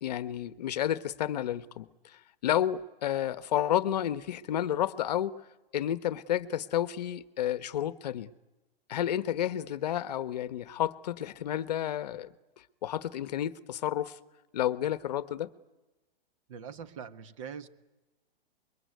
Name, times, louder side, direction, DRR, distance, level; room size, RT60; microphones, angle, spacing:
voice 1, 0.0-5.3 5.7-8.3 8.9-12.3 12.8-14.2 14.5-15.5, left 11 dB, 45° left, 1.1 m, -31 dB
voice 2, 16.5-17.7, right 7 dB, 35° right, 1.4 m, -42 dB
25.5 x 22.5 x 9.4 m
hypercardioid pair, 170°, 30 cm